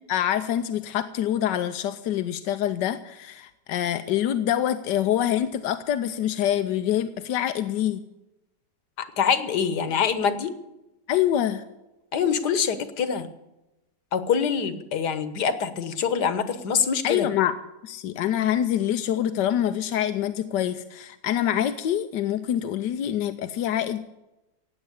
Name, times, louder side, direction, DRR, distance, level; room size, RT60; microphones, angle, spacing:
voice 1, 0.1-8.0 11.1-11.6 17.0-17.5 17.8-24.1, left 11 dB, 90° left, 10 dB, 1.4 m, -25 dB
voice 2, 9.0-10.5 12.1-13.3 14.1-17.3, left 7 dB, 70° left, 12 dB, 1.8 m, -25 dB
16.5 x 9.1 x 8.4 m, 0.95 s
omnidirectional pair, 1.8 m